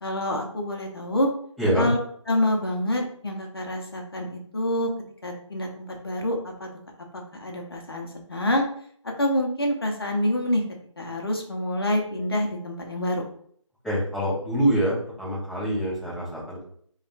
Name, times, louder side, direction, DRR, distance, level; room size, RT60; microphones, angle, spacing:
voice 1, 0.0-1.3 1.8-2.0 2.3-4.9 5.2-6.7 7.1-8.7 9.2-10.6 11.0-13.2, left 1 dB, 50° left, 1 dB, 0.7 m, -27 dB
voice 2, 1.6-1.9 13.8-16.6, right 1 dB, ahead, -22 dB, 0.6 m, -25 dB
3.4 x 2.4 x 2.4 m, 0.62 s
figure-of-eight pair, 165°, 17 cm